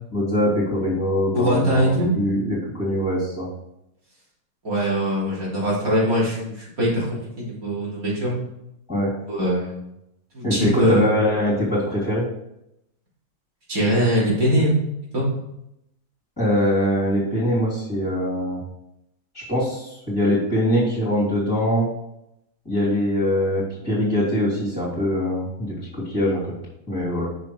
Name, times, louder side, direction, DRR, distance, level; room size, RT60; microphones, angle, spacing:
voice 1, 0.1-3.5 8.9-9.1 10.4-12.2 16.4-18.6 19.3-21.9 22.6-26.4 26.9-27.3, equal, 15° left, -9 dB, 3.1 m, -22 dB
voice 2, 1.3-2.1 4.6-7.1 7.4-8.3 9.3-9.7 10.3-11.1 13.7-14.7 15.1-15.3, equal, 60° right, -6 dB, 4.0 m, -21 dB
6.9 x 6.2 x 4.8 m, 0.82 s
omnidirectional pair, 1.7 m